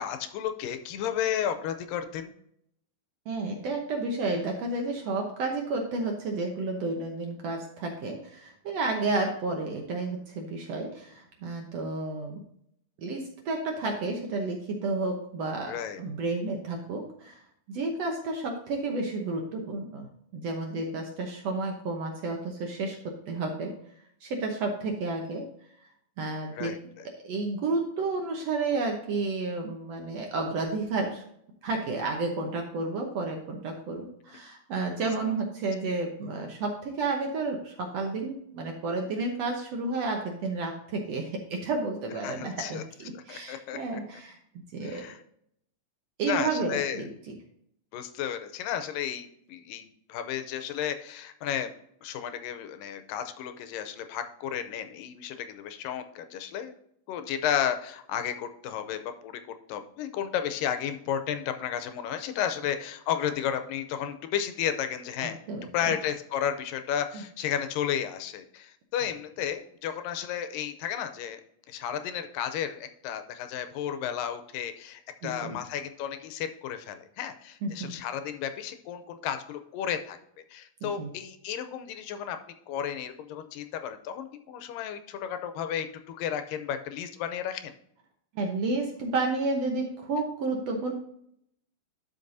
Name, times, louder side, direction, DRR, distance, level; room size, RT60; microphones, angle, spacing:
voice 1, 0.0-2.3 15.7-16.0 26.5-27.1 35.0-35.1 42.2-42.8 43.2-43.8 44.8-45.2 46.3-47.0 47.9-51.7 52.0-56.7 57.1-59.4 59.7-65.4 65.7-71.4 71.7-80.2 80.5-82.4 82.7-87.7, left 9 dB, 80° left, 8 dB, 2.3 m, -33 dB
voice 2, 3.3-12.4 13.0-15.7 16.0-17.4 17.7-23.0 23.3-23.7 24.2-25.4 26.2-26.7 27.2-31.2 31.6-44.4 44.7-45.0 46.2-47.3 65.2-65.9 67.1-67.2 75.2-75.6 77.6-77.9 80.8-81.1 88.4-90.9, right 3 dB, 65° right, 2 dB, 1.8 m, -31 dB
12.0 x 5.4 x 2.6 m, 0.72 s
omnidirectional pair, 3.9 m